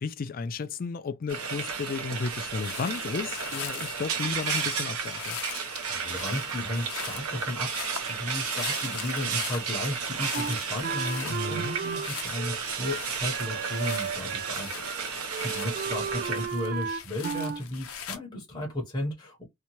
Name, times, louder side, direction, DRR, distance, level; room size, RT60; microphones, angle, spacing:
voice 1, 0.0-5.4 11.3-11.8, left 4 dB, 40° left, 0.3 m, -33 dB
Frying (food), 1.3-16.5, right 6 dB, 80° right, 0.8 m, -33 dB
sound 1, 2.6-18.2, left 8 dB, 75° left, 0.6 m, -42 dB
voice 2, 5.9-19.4, left 1 dB, 20° left, 0.8 m, -34 dB
Wind instrument woodwind instrument, 10.3-14.6 14.8-15.0 15.3-17.6, right 6 dB, 45° right, 0.4 m, -34 dB
2.7 x 2.2 x 2.8 m
head